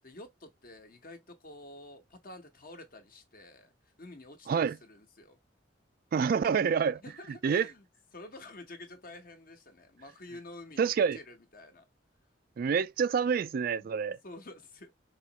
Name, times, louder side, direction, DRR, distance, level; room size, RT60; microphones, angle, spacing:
voice 1, 0.0-3.7 4.0-5.4 7.0-7.8 8.1-11.9 13.8-13.9 14.2-14.9, left 2 dB, 50° left, 1.1 m, -49 dB
voice 2, 6.1-7.0 7.4-7.7 10.8-11.2 12.6-14.2, right 6 dB, 50° right, 0.3 m, -27 dB
4.9 x 3.0 x 2.9 m
head